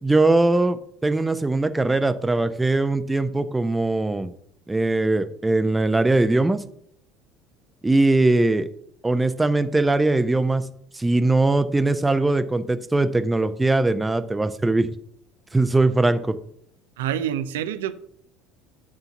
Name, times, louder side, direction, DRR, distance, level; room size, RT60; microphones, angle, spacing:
voice 1, 0.0-4.3 4.7-6.6 7.8-8.7 9.0-10.6 10.9-14.9 15.5-16.4, right 2 dB, 10° right, 0.7 m, -21 dB
voice 2, 17.0-17.9, right 10 dB, 70° right, 0.5 m, -26 dB
8.3 x 3.9 x 5.9 m
figure-of-eight pair, 65°, 0 cm